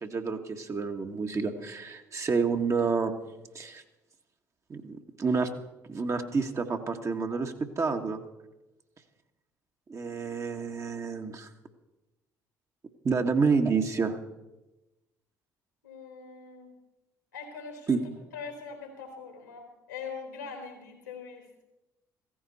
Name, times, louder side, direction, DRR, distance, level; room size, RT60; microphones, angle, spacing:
voice 1, 0.0-3.1 3.5-3.8 4.7-5.5 5.9-8.2 9.9-11.5 13.0-14.2 17.9-18.0, right 4 dB, 35° right, 4 dB, 1.6 m, -29 dB
voice 2, 15.8-16.7 17.3-18.0 18.3-21.6, left 5 dB, 85° left, 3 dB, 3.2 m, -42 dB
16.0 x 15.0 x 4.2 m, 1.0 s
figure-of-eight pair, 50°, 9 cm